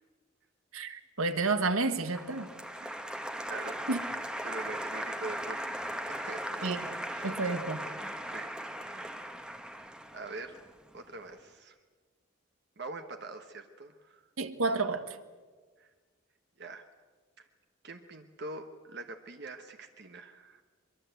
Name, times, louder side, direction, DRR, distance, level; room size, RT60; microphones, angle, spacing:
voice 1, 0.7-2.5 3.9-4.0 6.6-7.0 7.2-7.8 14.4-15.2, right 3 dB, 90° right, 1.6 m, -30 dB
Applause, 2.1-11.2, equal, 5° right, 1.1 m, -38 dB
voice 2, 3.5-3.9 4.4-6.8 7.1-7.3 8.2-8.5 8.8-9.3 9.8-10.6 10.9-11.8 12.8-14.2 15.8-15.9 16.6-16.9 17.4-17.5 17.8-20.6, right 3 dB, 50° right, 1.2 m, -44 dB
23.5 x 23.0 x 8.0 m
head